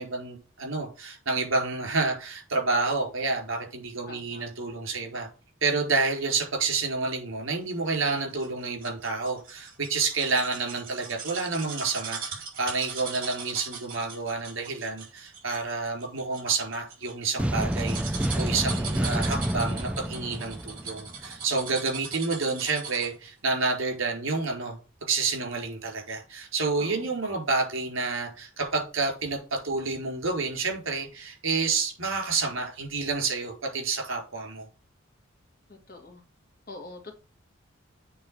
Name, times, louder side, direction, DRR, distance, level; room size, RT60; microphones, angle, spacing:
voice 1, 0.0-5.3 5.6-34.7, right 4 dB, 70° right, 1 dB, 4.4 m, -29 dB
voice 2, 4.1-4.4 26.8-27.1 35.7-36.2 36.7-37.2, left 2 dB, 45° left, 3 dB, 2.3 m, -45 dB
sound 1, 8.1-23.2 23.6-23.7, right 5 dB, 45° right, 4.7 m, -40 dB
sound 2, 17.4-21.4, right 1 dB, 5° right, 0.3 m, -29 dB
8.5 x 3.8 x 6.4 m, 0.34 s
head